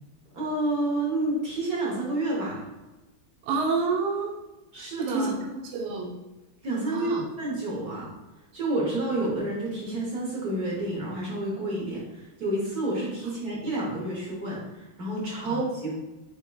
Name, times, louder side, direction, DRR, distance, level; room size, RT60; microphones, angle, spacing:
voice 1, 0.3-2.6 4.7-5.3 6.6-8.1 8.5-16.0, right 2 dB, 50° right, -4 dB, 1.3 m, -29 dB
voice 2, 3.4-4.3 4.7-6.1 6.9-7.3 15.4-15.6, right 4 dB, 80° right, -1 dB, 1.5 m, -29 dB
6.7 x 2.9 x 2.3 m, 1.1 s
omnidirectional pair, 2.4 m